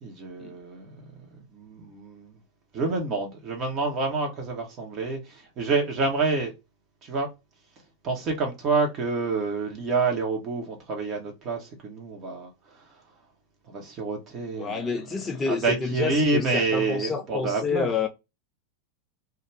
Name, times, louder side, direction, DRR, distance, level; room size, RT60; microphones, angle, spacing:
voice 1, 0.0-1.3 1.5-2.4 2.7-6.5 7.0-7.3 8.0-13.0 13.7-15.0 15.4-18.1, right 3 dB, 35° right, 0.7 m, -28 dB
voice 2, 14.6-18.1, left 5 dB, 20° left, 0.3 m, -29 dB
2.3 x 2.2 x 3.1 m
figure-of-eight pair, 90°, 0 cm